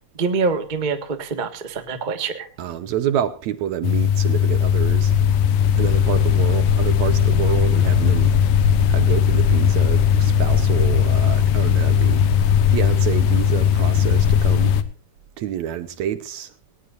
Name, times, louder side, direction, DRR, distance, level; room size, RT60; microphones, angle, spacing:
voice 1, 0.2-2.5, right 4 dB, 25° right, 1.0 m, -25 dB
voice 2, 2.6-5.1 5.8-8.4 8.9-12.3 12.7-14.8 15.4-16.5, right 10 dB, 70° right, 2.1 m, -28 dB
sound 1, 3.8-14.8, left 8 dB, 85° left, 2.6 m, -18 dB
19.0 x 19.0 x 2.6 m
omnidirectional pair, 3.7 m